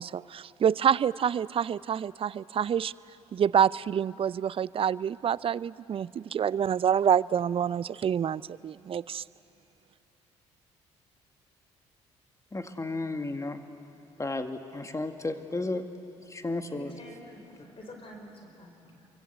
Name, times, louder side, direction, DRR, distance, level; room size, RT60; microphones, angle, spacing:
voice 1, 0.0-2.9 3.3-9.2, right 8 dB, 40° right, 21 dB, 0.5 m, -27 dB
voice 2, 12.5-13.6 14.2-15.8 16.3-16.9, left 2 dB, 20° left, 7 dB, 2.0 m, -33 dB
voice 3, 16.7-19.1, left 1 dB, 40° left, 3 dB, 4.2 m, -48 dB
27.0 x 24.0 x 8.0 m, 2.8 s
hypercardioid pair, 45°, 15 cm